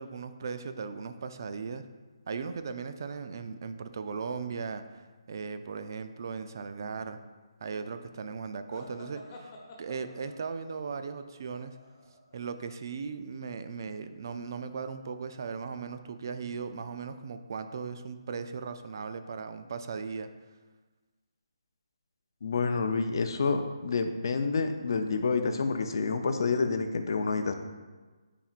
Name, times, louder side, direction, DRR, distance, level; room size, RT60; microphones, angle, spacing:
voice 1, 0.0-1.8 2.3-7.2 7.6-9.5 9.8-11.8 12.3-20.3, right 5 dB, 50° right, 9 dB, 0.4 m, -37 dB
sound 1, 8.7-12.4, left 2 dB, 30° left, 1.0 m, -50 dB
voice 2, 22.4-27.5, left 4 dB, 55° left, 7 dB, 0.6 m, -28 dB
8.9 x 4.3 x 2.5 m, 1.3 s
hypercardioid pair, 160°, 3 cm